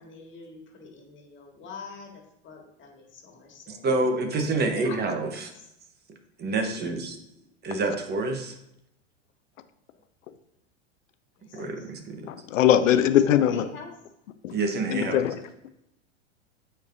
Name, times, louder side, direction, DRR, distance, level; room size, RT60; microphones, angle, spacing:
voice 1, 0.0-3.8 4.5-5.7 6.6-6.9 11.4-11.6 12.8-13.9, left 4 dB, 30° left, 1 dB, 1.8 m, -44 dB
voice 2, 3.7-5.5 6.4-7.2 7.6-8.6 11.5-12.3 14.5-15.2, right 3 dB, 25° right, 5 dB, 1.0 m, -27 dB
voice 3, 12.2-13.7 14.4-14.6 14.9-15.4, left 10 dB, 90° left, 11 dB, 0.6 m, -21 dB
8.6 x 4.6 x 2.6 m, 0.82 s
hypercardioid pair, 110°, 37 cm